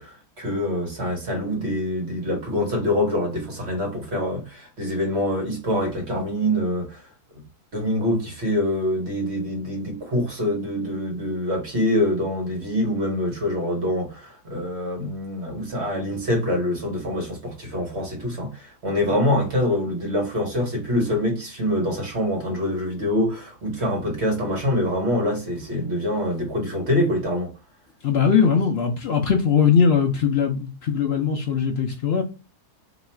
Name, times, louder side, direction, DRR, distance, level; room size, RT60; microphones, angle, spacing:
voice 1, 0.0-7.0 7.7-27.5, left 1 dB, 45° right, 1.2 m, -25 dB
voice 2, 28.0-32.2, left 6 dB, 70° left, 0.6 m, -20 dB
3.0 x 2.3 x 4.1 m
omnidirectional pair, 1.7 m